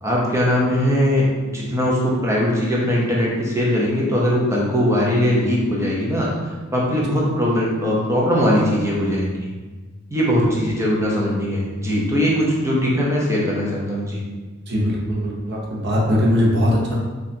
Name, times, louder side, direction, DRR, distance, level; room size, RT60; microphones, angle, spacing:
voice 1, 0.0-6.3 6.7-9.4 10.1-14.2, equal, 15° right, -5 dB, 0.6 m, -20 dB
voice 2, 14.7-17.0, left 1 dB, 55° right, -3 dB, 0.7 m, -20 dB
4.1 x 2.4 x 2.7 m, 1.3 s
head